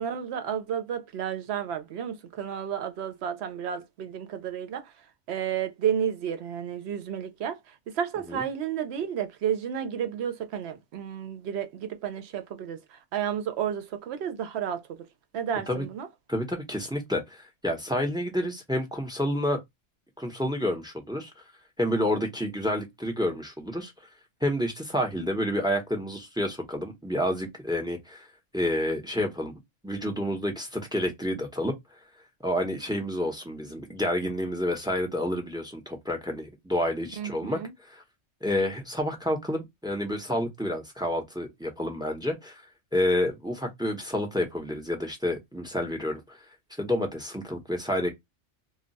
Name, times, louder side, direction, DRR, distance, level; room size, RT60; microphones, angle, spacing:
voice 1, 0.0-4.9 5.3-15.1 15.3-16.1 37.2-37.7, right 8 dB, 65° right, 0.9 m, -32 dB
voice 2, 16.3-19.6 20.2-21.3 21.8-23.9 24.4-28.3 28.5-29.5 29.8-31.7 32.4-37.6 37.9-38.0 38.4-42.6 42.9-46.4 46.8-48.1, left 1 dB, 5° right, 0.6 m, -29 dB
2.3 x 2.3 x 3.9 m
omnidirectional pair, 1.2 m